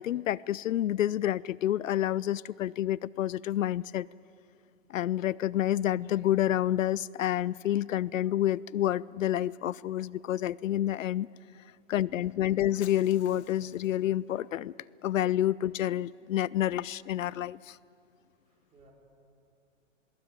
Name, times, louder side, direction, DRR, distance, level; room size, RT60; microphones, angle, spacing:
voice 1, 0.0-4.1 4.9-11.3 11.9-14.7 15.0-17.8, left 12 dB, 80° left, 23 dB, 0.5 m, -29 dB
Shatter, 12.8-14.1, left 9 dB, 60° left, 1.5 m, -52 dB
voice 2, 18.5-18.9, right 3 dB, 15° right, -3 dB, 5.2 m, -62 dB
22.0 x 18.0 x 9.1 m, 2.5 s
hypercardioid pair, 140°, 39 cm